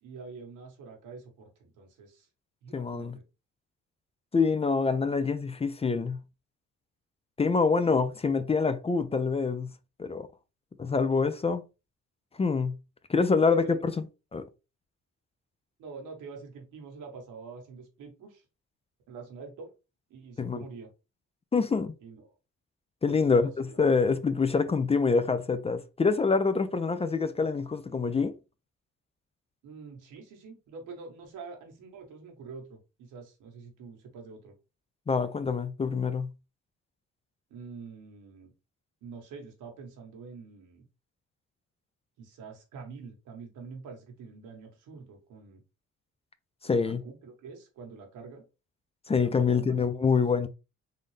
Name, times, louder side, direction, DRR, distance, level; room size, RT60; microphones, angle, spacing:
voice 1, 0.0-2.3 2.6-3.2 13.5-13.8 15.8-18.4 19.1-19.7 20.1-20.9 22.0-22.4 23.1-23.8 29.6-34.5 37.5-38.5 39.0-40.8 42.2-45.6 46.7-48.4 49.1-50.2, right 4 dB, 90° right, 1.4 m, -46 dB
voice 2, 2.7-3.2 4.3-6.2 7.4-9.7 10.0-10.3 10.8-11.6 12.4-12.7 13.1-13.9 14.3-14.4 20.4-20.6 21.5-21.9 23.0-28.4 35.1-36.3 46.6-47.0 49.1-50.5, left 4 dB, 20° left, 0.4 m, -26 dB
3.8 x 2.6 x 3.3 m
cardioid pair, 90°, 30 cm